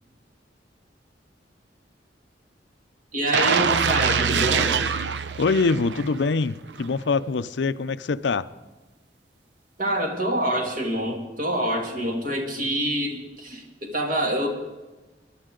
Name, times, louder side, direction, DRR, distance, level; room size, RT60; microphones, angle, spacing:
voice 1, 3.1-4.8 9.8-14.5, right 1 dB, 50° right, 2 dB, 2.5 m, -26 dB
sound 1, 3.3-6.3 6.7-6.8, right 6 dB, 80° right, 0.7 m, -24 dB
voice 2, 5.4-8.5, left 4 dB, 80° left, 14 dB, 0.5 m, -24 dB
23.0 x 11.5 x 3.8 m, 1.2 s
head